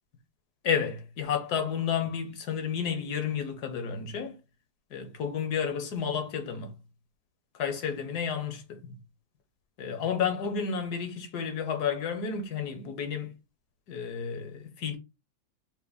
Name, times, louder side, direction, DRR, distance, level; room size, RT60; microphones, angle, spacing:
voice 1, 0.6-4.4 4.9-6.7 7.5-8.9 9.8-13.3 13.9-15.0, left 7 dB, 65° left, 1.4 m, -31 dB
5.9 x 2.1 x 4.0 m
omnidirectional pair, 1.9 m